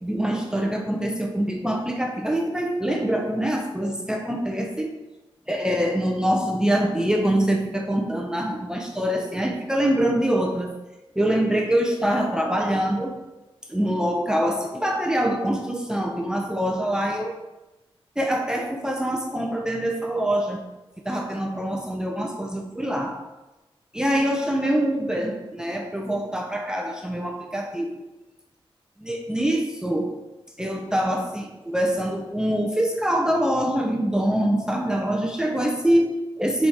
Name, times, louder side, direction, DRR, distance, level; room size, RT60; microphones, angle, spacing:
voice 1, 0.0-4.9 5.5-10.8 11.2-13.2 13.7-17.4 18.2-20.6 21.0-23.2 23.9-27.9 29.0-30.1 30.6-36.7, right 1 dB, 5° right, 1 dB, 0.6 m, -24 dB
6.1 x 4.2 x 4.7 m, 1.0 s
wide cardioid pair, 115°, 10 cm